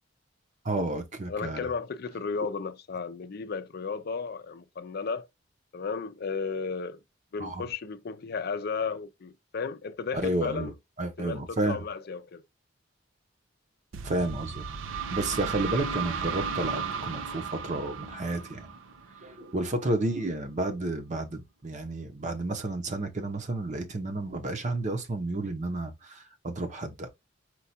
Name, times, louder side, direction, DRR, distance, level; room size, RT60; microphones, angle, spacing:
voice 1, 0.6-1.7 7.4-7.6 10.1-10.7 11.0-11.8 14.0-14.6 15.1-18.7 19.2-27.1, right 2 dB, 40° right, 0.8 m, -31 dB
voice 2, 1.3-5.3 5.7-7.0 7.3-10.7 11.2-12.4, left 5 dB, 55° left, 0.5 m, -34 dB
sound 1, 13.9-19.6, right 5 dB, 90° right, 0.5 m, -35 dB
4.6 x 2.4 x 4.1 m
head